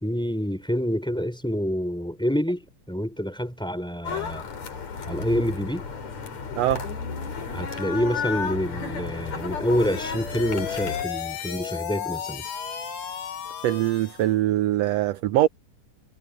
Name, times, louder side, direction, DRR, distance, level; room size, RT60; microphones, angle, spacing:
voice 1, 0.0-4.5 5.0-5.9 7.5-12.4, equal, ahead, 4.4 m, -27 dB
sound 1, 4.1-11.0, left 5 dB, 60° left, 4.6 m, -33 dB
sound 2, 9.5-14.3, left 8 dB, 80° left, 3.6 m, -34 dB
voice 2, 13.6-15.5, right 14 dB, 75° right, 1.5 m, -22 dB
omnidirectional pair, 3.6 m